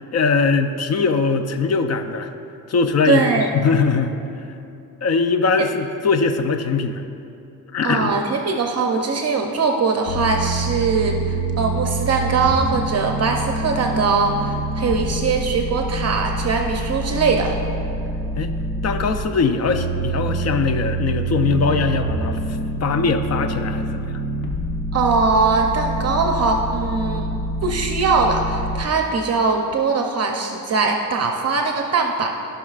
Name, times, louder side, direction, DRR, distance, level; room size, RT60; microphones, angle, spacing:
voice 1, 0.1-2.3 2.7-4.1 5.0-7.0 7.7-8.2 18.4-18.5 18.8-24.2, left 4 dB, 45° left, 8 dB, 0.5 m, -21 dB
voice 2, 3.1-3.5 7.8-17.6 24.9-27.3 27.6-32.3, right 4 dB, 45° right, 3 dB, 0.6 m, -21 dB
sound 1, 10.1-19.2 19.7-28.8, right 2 dB, 70° left, 1.2 m, -26 dB
15.5 x 5.6 x 2.4 m, 2.7 s
cardioid pair, 115°, 36 cm